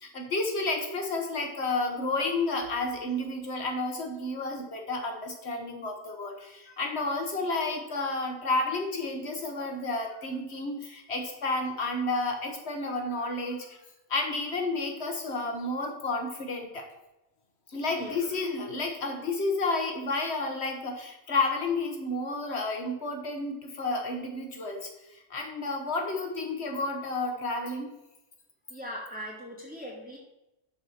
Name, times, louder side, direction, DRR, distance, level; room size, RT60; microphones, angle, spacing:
voice 1, 0.0-13.6 14.1-16.8 17.7-24.9 25.3-27.9, left 2 dB, 70° left, 3 dB, 1.4 m, -31 dB
voice 2, 28.7-30.2, equal, 10° right, -7 dB, 2.3 m, -40 dB
11.5 x 4.3 x 6.4 m, 0.92 s
omnidirectional pair, 1.1 m